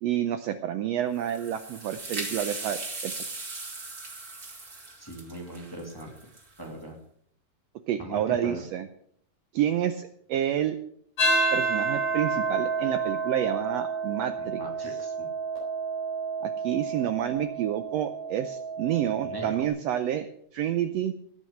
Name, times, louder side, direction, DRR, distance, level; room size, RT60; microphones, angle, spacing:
voice 1, 0.0-3.1 7.9-8.9 9.5-10.8 11.5-14.9 16.4-20.3 20.5-21.1, right 10 dB, 75° right, 9 dB, 1.7 m, -29 dB
sound 1, 1.1-6.6, right 3 dB, 30° right, 2.9 m, -38 dB
voice 2, 5.0-6.1 6.6-7.0 8.0-8.6 14.4-15.3 18.9-19.7, right 1 dB, 10° left, 0 dB, 2.1 m, -40 dB
sound 2, 11.2-19.7, right 3 dB, 75° left, 5.0 m, -30 dB
18.5 x 6.3 x 6.5 m, 0.65 s
omnidirectional pair, 3.4 m